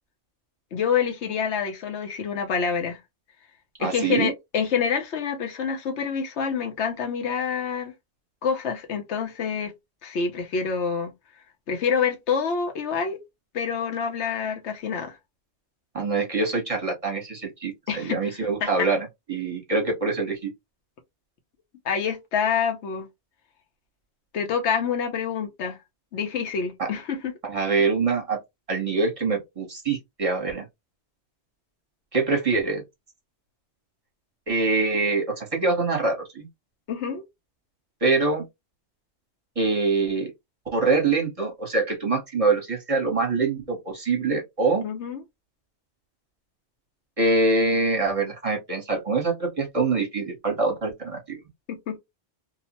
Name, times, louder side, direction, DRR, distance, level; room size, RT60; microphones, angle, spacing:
voice 1, 0.7-3.0 3.8-7.9 8.4-9.7 10.0-11.1 11.7-13.2 13.5-15.2 17.9-18.9 21.8-23.1 24.3-25.8 26.1-27.3 36.9-37.2 44.8-45.2 51.7-52.0, left 6 dB, 90° left, 1.0 m, -27 dB
voice 2, 3.8-4.3 15.9-20.5 26.8-26.9 27.4-28.4 28.7-30.7 32.1-32.8 34.5-36.5 38.0-38.5 39.6-40.3 40.7-44.9 47.2-51.4, right 3 dB, 35° right, 0.9 m, -24 dB
2.8 x 2.1 x 2.8 m
omnidirectional pair, 1.1 m